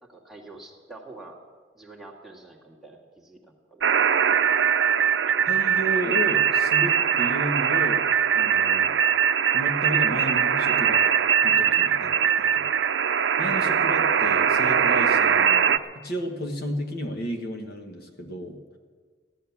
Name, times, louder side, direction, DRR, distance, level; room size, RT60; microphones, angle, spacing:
voice 1, 0.0-1.4 1.7-4.3 11.7-12.0 13.2-13.3, right 2 dB, ahead, -3 dB, 1.9 m, -47 dB
sound 1, 3.8-15.8, right 7 dB, 80° right, 0.5 m, -21 dB
voice 2, 5.5-8.1 8.3-8.9 9.5-11.1 11.4-12.1 12.4-12.6 13.4-18.6, equal, 60° left, 2 dB, 1.5 m, -32 dB
15.0 x 10.5 x 7.2 m, 1.5 s
head